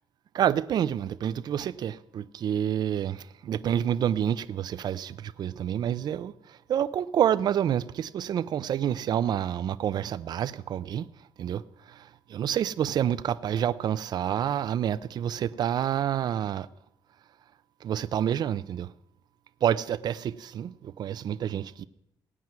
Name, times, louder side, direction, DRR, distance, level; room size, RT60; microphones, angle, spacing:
voice 1, 0.3-11.1 11.4-11.6 11.9-16.7 17.8-18.9 19.6-21.8, right 10 dB, 55° right, 0.5 m, -28 dB
16.5 x 6.0 x 9.4 m
cardioid pair, 155°, 8 cm